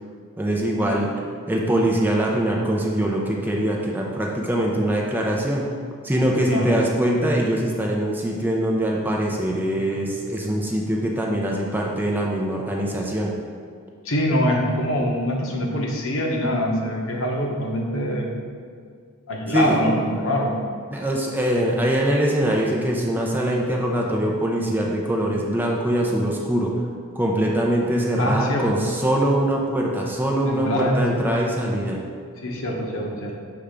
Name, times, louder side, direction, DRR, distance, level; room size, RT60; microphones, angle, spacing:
voice 1, 0.4-1.1 1.5-5.7 6.0-13.3 19.5-19.8 20.9-26.7 27.2-32.0, right 1 dB, 10° right, -1 dB, 0.5 m, -23 dB
voice 2, 14.0-18.3 19.3-20.6 28.2-28.9 30.4-31.0 32.4-33.3, equal, 70° left, 0 dB, 1.0 m, -24 dB
6.9 x 3.4 x 5.0 m, 2.1 s
head